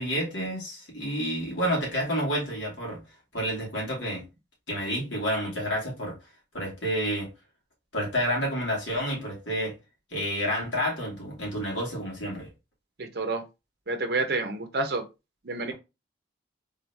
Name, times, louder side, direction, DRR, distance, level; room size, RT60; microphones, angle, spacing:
voice 1, 0.0-3.0 3.3-4.2 4.7-6.2 6.5-7.3 7.9-9.7 10.1-12.5, equal, 80° left, 2.3 m, -29 dB
voice 2, 13.0-13.4 13.9-15.0 15.4-15.7, right 3 dB, 55° right, 0.7 m, -29 dB
3.7 x 2.8 x 3.4 m
head